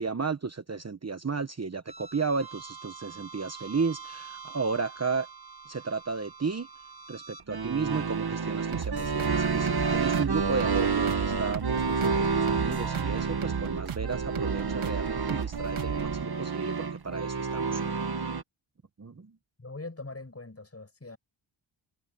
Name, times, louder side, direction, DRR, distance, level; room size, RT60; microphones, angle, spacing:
voice 1, 0.0-5.3 5.7-6.7 7.1-17.8 19.0-19.3, right 4 dB, 30° right, 1.2 m, -33 dB
sound 1, 1.9-18.4, right 5 dB, 50° right, 2.3 m, -31 dB
sound 2, 8.7-16.2, right 7 dB, 90° right, 3.7 m, -36 dB
voice 2, 19.6-21.2, left 3 dB, 30° left, 7.8 m, -42 dB
cardioid pair, 65°, 49 cm